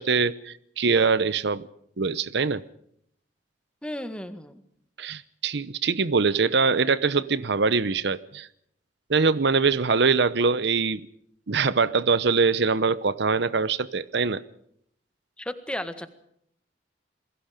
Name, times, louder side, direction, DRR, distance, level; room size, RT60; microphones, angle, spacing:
voice 1, 0.0-1.6 2.0-2.6 5.0-8.5 9.1-11.0 11.5-14.4, right 4 dB, 70° right, 17 dB, 0.8 m, -23 dB
voice 2, 3.8-4.5 15.4-16.1, left 1 dB, 5° left, 10 dB, 1.7 m, -34 dB
28.0 x 21.5 x 5.1 m, 0.69 s
head